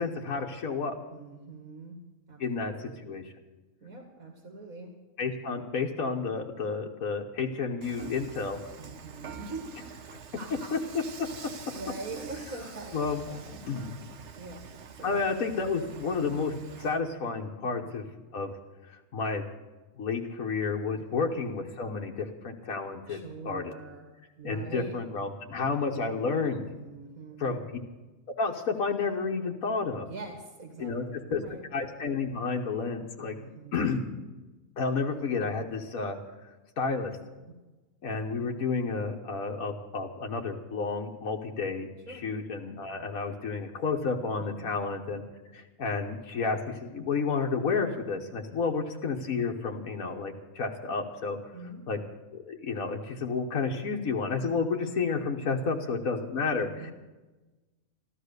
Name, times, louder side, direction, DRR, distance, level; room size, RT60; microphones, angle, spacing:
voice 1, 0.0-0.9 2.4-3.2 5.2-8.6 10.7-10.8 12.9-13.3 13.7-13.9 15.0-18.0 18.3-18.5 18.9-19.4 20.0-23.7 24.4-26.7 27.4-27.6 28.4-30.1 30.8-31.0 31.3-31.4 31.7-33.4 33.7-34.1 34.8-36.2 36.8-37.2 38.0-45.2 45.5-51.4 51.9-52.0 52.3-56.9, left 4 dB, 80° left, 1 dB, 1.6 m, -31 dB
voice 2, 1.1-2.0 2.3-3.1 3.8-4.9 8.8-9.8 10.4-10.7 11.7-13.6 14.3-14.7 15.0-15.3 17.6-18.1 21.1-21.3 23.1-24.1 24.4-25.0 26.7-27.6 30.1-31.6 33.3-33.7 42.1-42.2 44.4-44.7 48.6-48.7 51.5-51.8 55.8-55.9 56.8-56.9, right 3 dB, 80° right, 3 dB, 2.5 m, -43 dB
Dishes pots and pans / Frying (food), 7.8-17.0, right 6 dB, 60° right, 1.2 m, -46 dB
14.0 x 13.0 x 6.7 m, 1.2 s
omnidirectional pair, 1.4 m